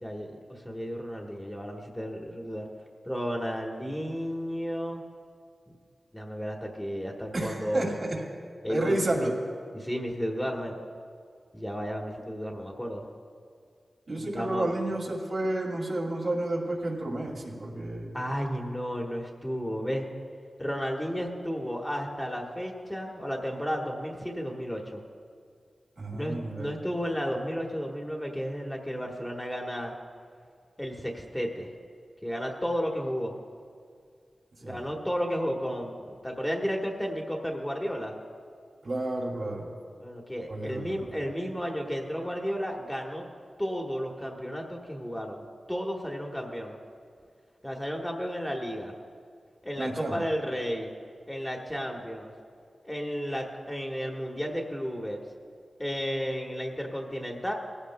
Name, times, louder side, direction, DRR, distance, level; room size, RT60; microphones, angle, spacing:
voice 1, 0.0-2.7 3.0-5.0 6.1-7.9 8.6-9.3 9.7-10.8 11.5-13.1 14.2-14.7 18.1-20.1 20.6-25.0 26.1-29.9 30.8-31.7 32.2-33.4 34.6-38.2 40.0-43.3 43.6-46.8 47.6-48.9 49.6-50.9 51.3-52.3 52.8-55.2 55.8-57.5, equal, 10° left, 0 dB, 1.3 m, -33 dB
voice 2, 7.3-8.2 8.7-9.3 14.1-18.1 26.0-26.7 34.6-34.8 38.8-39.7 40.5-41.1 49.8-50.2, right 1 dB, 55° right, -2 dB, 2.6 m, -31 dB
18.5 x 15.0 x 2.2 m, 2.2 s
wide cardioid pair, 85°, 0 cm